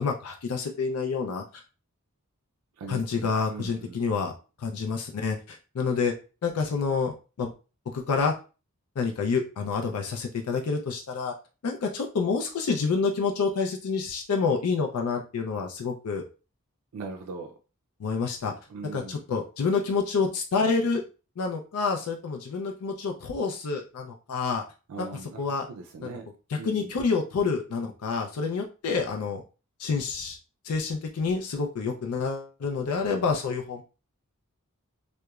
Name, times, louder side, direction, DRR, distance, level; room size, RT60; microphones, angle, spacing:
voice 1, 0.0-1.6 2.9-4.3 4.6-6.1 6.4-7.5 7.9-8.3 9.0-11.3 11.6-16.2 18.0-18.5 18.9-21.0 21.4-24.6 25.0-25.1 25.4-25.7 26.0-26.1 26.5-29.4 29.8-30.4 30.6-33.8, left 5 dB, 90° left, 3 dB, 0.4 m, -28 dB
voice 2, 2.8-4.0 16.9-17.5 18.7-19.2 24.9-26.3 26.6-26.9, right 3 dB, 80° right, 2 dB, 0.4 m, -40 dB
2.9 x 2.1 x 2.3 m, 0.33 s
head